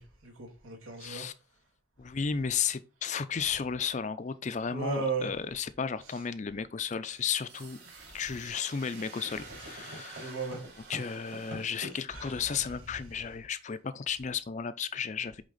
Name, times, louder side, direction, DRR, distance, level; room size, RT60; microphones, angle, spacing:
voice 1, 0.0-1.2 4.7-5.3 7.9-8.2 10.1-10.6 12.1-12.4, right 5 dB, 90° right, 2.4 m, -36 dB
voice 2, 1.0-1.3 2.0-7.8 8.1-10.3 10.9-15.4, left 6 dB, 35° left, 0.4 m, -34 dB
sound 1, 7.1-11.9, right 1 dB, 65° right, 3.6 m, -46 dB
8.2 x 3.5 x 3.9 m
head